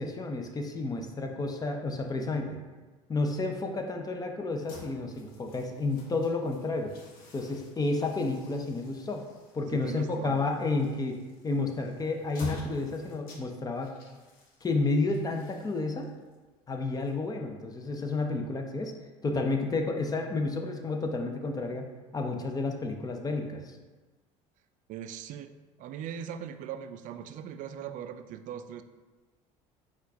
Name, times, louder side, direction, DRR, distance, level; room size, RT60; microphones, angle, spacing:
voice 1, 0.0-2.6 3.1-6.9 7.3-9.2 9.5-11.2 11.4-13.9 14.6-16.1 16.7-18.9 19.2-21.9 22.1-23.8, left 3 dB, 25° left, 3 dB, 0.6 m, -31 dB
sound 1, 4.5-17.6, left 3 dB, 65° left, 1.0 m, -49 dB
voice 2, 9.7-10.5 24.9-25.5 25.8-28.8, right 9 dB, 55° right, 10 dB, 0.4 m, -40 dB
4.3 x 2.4 x 4.7 m, 1.3 s
supercardioid pair, 85°, 16 cm